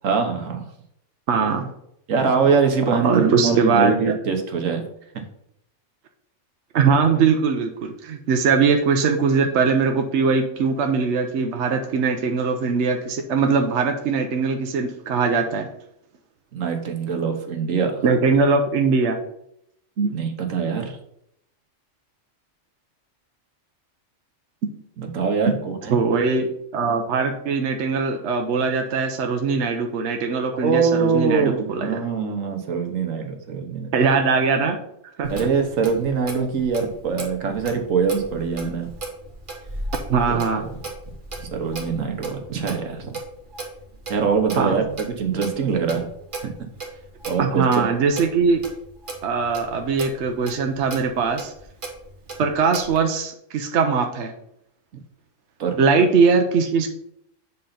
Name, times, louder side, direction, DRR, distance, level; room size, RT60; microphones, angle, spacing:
voice 1, 0.0-0.7 2.1-4.8 5.1-5.2 16.5-18.0 20.1-21.0 25.0-26.0 30.5-33.9 35.3-38.9 40.3-40.7 41.4-43.2 44.1-46.1 46.4-46.5 47.3-47.8 55.6-55.8, right 5 dB, 85° right, 4 dB, 1.5 m, -23 dB
voice 2, 1.3-1.7 3.0-4.1 6.7-15.7 18.0-19.2 20.0-20.1 24.6-24.7 25.9-32.0 33.9-34.8 35.2-35.3 40.1-40.7 44.6-44.8 47.4-48.7 49.2-51.5 52.4-54.3 55.8-56.9, right 5 dB, 65° right, 4 dB, 1.0 m, -21 dB
Clock, 35.2-53.0, right 2 dB, 40° right, 1.6 m, -36 dB
7.5 x 3.9 x 5.7 m, 0.75 s
omnidirectional pair, 1.3 m